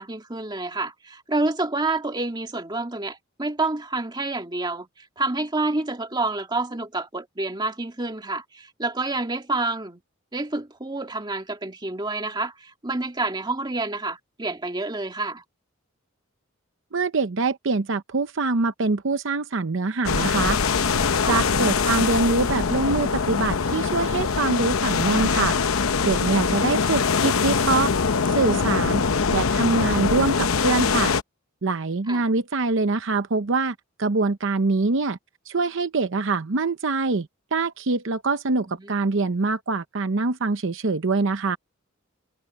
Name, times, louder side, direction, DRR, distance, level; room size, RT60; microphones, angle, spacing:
voice 1, 0.0-4.9 5.2-10.0 10.3-15.4 21.2-21.5 32.1-32.2 38.7-39.0, right 2 dB, 20° right, 2.0 m, -28 dB
voice 2, 16.9-20.6 21.2-25.6 26.0-27.9 28.3-29.0 29.3-31.1 31.6-35.2 35.5-41.6, right 3 dB, 65° right, 0.8 m, -24 dB
sound 1, 20.0-31.2, left 5 dB, 90° left, 0.8 m, -23 dB
head